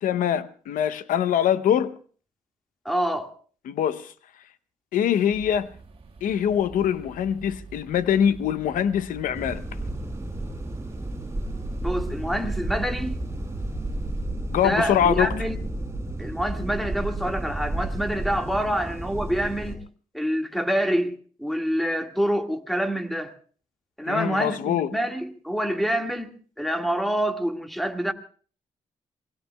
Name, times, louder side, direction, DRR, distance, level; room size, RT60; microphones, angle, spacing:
voice 1, 0.0-1.9 3.6-4.1 4.9-5.7 6.2-9.6 14.5-15.3 24.1-24.9, left 9 dB, 90° left, 0.7 m, -23 dB
voice 2, 2.9-3.3 11.8-13.2 14.5-15.6 16.2-19.8 20.1-23.3 24.0-28.1, equal, ahead, 1.8 m, -27 dB
sound 1, 5.3-14.3, right 4 dB, 45° right, 2.6 m, -45 dB
sound 2, 9.3-19.8, right 1 dB, 20° right, 6.1 m, -32 dB
27.0 x 21.5 x 2.3 m
cardioid pair, 70°, 13 cm